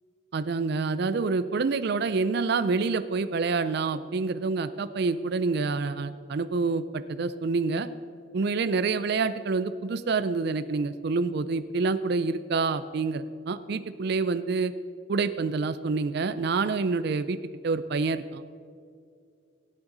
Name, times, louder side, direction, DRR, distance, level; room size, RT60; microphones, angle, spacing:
voice 1, 0.3-7.9 8.3-14.7 15.1-17.4 17.6-18.4, right 4 dB, 55° right, 12 dB, 0.4 m, -27 dB
18.0 x 8.7 x 3.9 m, 2.3 s
head